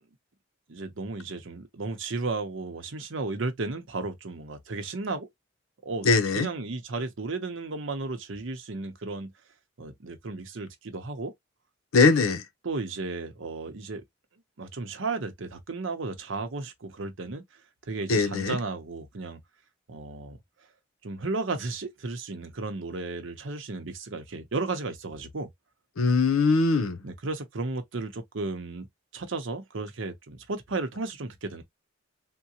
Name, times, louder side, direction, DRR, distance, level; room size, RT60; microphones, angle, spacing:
voice 1, 0.7-5.3 5.8-6.1 6.3-9.3 9.8-11.3 12.6-14.0 14.6-17.4 17.8-19.4 19.9-20.4 21.0-25.5 27.0-28.9 29.1-31.6, right 3 dB, 70° right, 0.7 m, -34 dB
voice 2, 6.0-6.5 11.9-12.4 18.1-18.6 26.0-27.0, left 4 dB, 90° left, 0.6 m, -21 dB
3.7 x 2.1 x 2.8 m
head